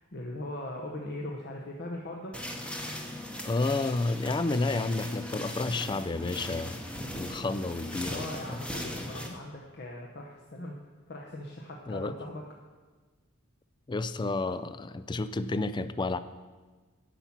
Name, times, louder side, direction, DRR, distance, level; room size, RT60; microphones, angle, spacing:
voice 1, 0.0-2.4 8.1-10.8 11.1-12.4, left 1 dB, 50° left, 0 dB, 0.9 m, -40 dB
sound 1, 2.3-9.3, left 1 dB, 5° left, 0.8 m, -38 dB
voice 2, 3.4-6.8 7.1-8.3 11.9-12.1 13.9-16.2, left 3 dB, 20° left, 13 dB, 0.3 m, -30 dB
10.0 x 5.7 x 7.3 m, 1.4 s
head